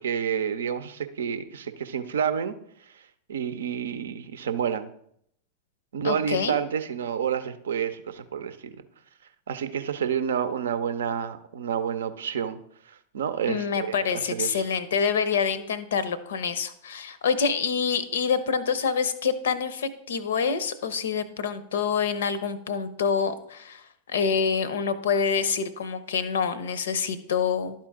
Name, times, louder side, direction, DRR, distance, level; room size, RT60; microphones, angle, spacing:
voice 1, 0.0-2.5 3.3-4.9 5.9-8.7 9.5-12.6 12.9-14.7, right 8 dB, 65° right, 11 dB, 0.6 m, -29 dB
voice 2, 6.0-6.6 13.5-27.7, left 6 dB, 60° left, 15 dB, 0.6 m, -26 dB
12.0 x 4.4 x 3.6 m, 0.69 s
figure-of-eight pair, 90°, 0 cm